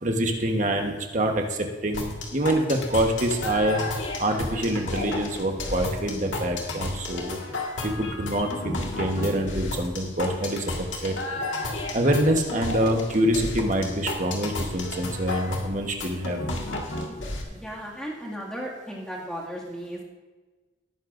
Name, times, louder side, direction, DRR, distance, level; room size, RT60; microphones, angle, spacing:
voice 1, 0.0-3.8 4.2-7.4 7.8-10.6 11.0-11.1 11.9-16.4, right 1 dB, 40° right, 3 dB, 1.2 m, -25 dB
sound 1, 1.9-17.4, left 2 dB, 85° left, 1.9 m, -32 dB
voice 2, 17.5-20.0, equal, 5° left, -4 dB, 2.2 m, -35 dB
18.0 x 9.9 x 2.6 m, 1.3 s
head